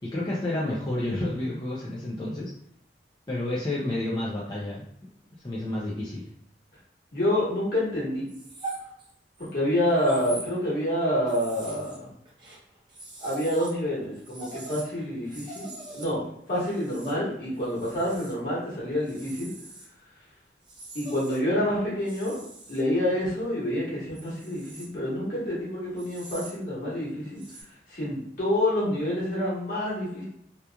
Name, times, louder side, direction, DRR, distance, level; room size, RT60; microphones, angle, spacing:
voice 1, 0.0-2.5 3.3-4.9 5.4-6.2, left 1 dB, 25° left, -6 dB, 0.4 m, -30 dB
voice 2, 7.1-8.2 9.4-12.1 13.2-15.7 15.9-19.5 20.9-22.4 22.7-27.4 27.9-30.2, left 1 dB, 55° left, -7 dB, 1.3 m, -27 dB
sound 1, 8.3-9.5 10.0-10.9 11.3-13.8 14.0-18.3 19.0-19.9 20.6-21.4 22.0-22.8 24.1-24.9 26.0-26.5 27.4-27.6, right 2 dB, 25° right, 0.6 m, -42 dB
2.8 x 2.4 x 2.3 m, 0.74 s
head